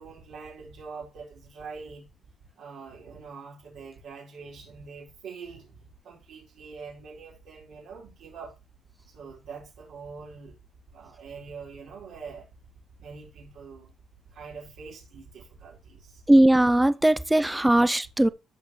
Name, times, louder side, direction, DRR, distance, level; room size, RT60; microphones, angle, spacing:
voice 1, 0.0-2.1 2.6-8.6 9.1-10.6 10.9-12.5 13.0-13.9 14.3-16.2, right 5 dB, 75° right, 4.6 m, -44 dB
voice 2, 16.3-18.3, right 1 dB, 10° right, 0.6 m, -19 dB
15.0 x 5.3 x 3.2 m
cardioid pair, 80°, 0 cm